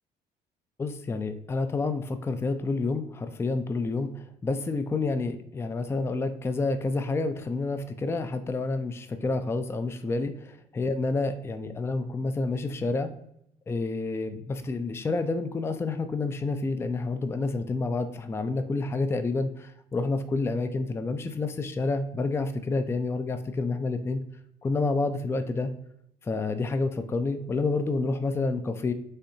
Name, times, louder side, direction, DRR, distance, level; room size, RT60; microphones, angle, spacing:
voice 1, 0.8-13.1 13.7-24.2 24.6-25.7 26.2-28.9, left 3 dB, 15° left, 9 dB, 0.4 m, -29 dB
6.6 x 2.7 x 2.7 m, 0.75 s
cardioid pair, 110°, 17 cm